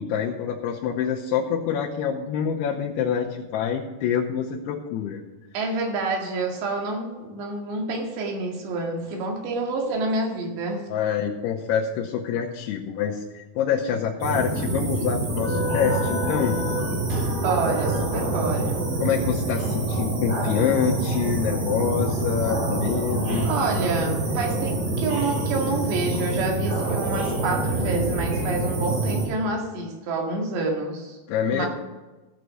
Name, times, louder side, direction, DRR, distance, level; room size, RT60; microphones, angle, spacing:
voice 1, 0.0-5.2 10.9-16.6 19.0-23.5 31.3-31.7, left 8 dB, 80° left, -3 dB, 2.8 m, -26 dB
voice 2, 5.5-10.9 17.3-18.8 23.5-31.2 31.5-31.7, right 3 dB, 80° right, 1 dB, 4.2 m, -28 dB
sound 1, 14.2-29.3, right 2 dB, 60° right, 5.7 m, -26 dB
16.0 x 6.8 x 6.3 m, 1.2 s
omnidirectional pair, 4.9 m